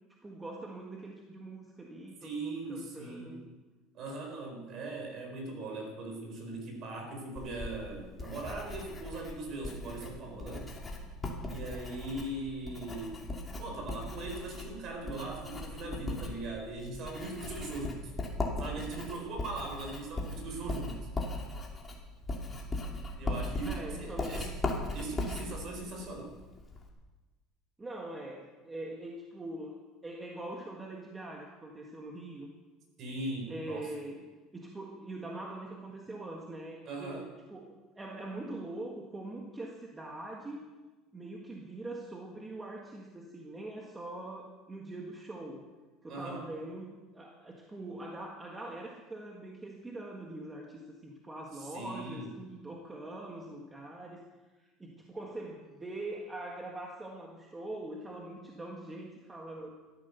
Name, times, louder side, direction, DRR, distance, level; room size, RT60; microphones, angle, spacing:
voice 1, 0.2-3.4 9.9-10.2 23.6-24.4 27.8-32.5 33.5-40.6 41.1-45.7 46.0-54.2 54.8-59.7, right 2 dB, 10° right, 0 dB, 1.6 m, -43 dB
voice 2, 2.2-3.5 3.9-10.7 11.5-13.2 13.6-18.1 18.6-21.1 23.2-24.5 24.9-26.3 33.0-33.9 36.8-37.3 46.1-46.5 51.6-52.3, right 2 dB, 40° right, 2 dB, 4.9 m, -40 dB
Writing, 7.4-26.9, left 2 dB, 15° left, 2.5 m, -38 dB
15.0 x 13.5 x 6.8 m, 1.2 s
cardioid pair, 160°, 0 cm